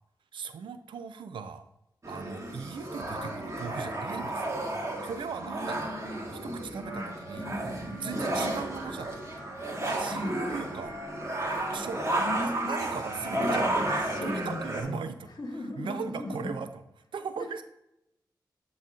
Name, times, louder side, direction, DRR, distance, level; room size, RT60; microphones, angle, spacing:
voice 1, 0.3-1.7 2.1-4.4 4.8-5.9 6.4-9.5 9.8-11.0 11.7-15.3 15.8-16.7 17.1-17.6, right 6 dB, 90° right, 10 dB, 0.5 m, -39 dB
sound 1, 2.0-14.8, right 1 dB, 35° right, 1.5 m, -32 dB
voice 2, 5.5-7.1 10.1-10.4 12.2-12.9 13.3-15.0 15.4-16.5 17.4-17.6, left 1 dB, 55° left, 4 dB, 1.2 m, -38 dB
Wind instrument woodwind instrument, 6.8-12.0, right 1 dB, 10° left, 1.4 m, -48 dB
12.0 x 4.1 x 2.5 m, 0.86 s
cardioid pair, 50°, 8 cm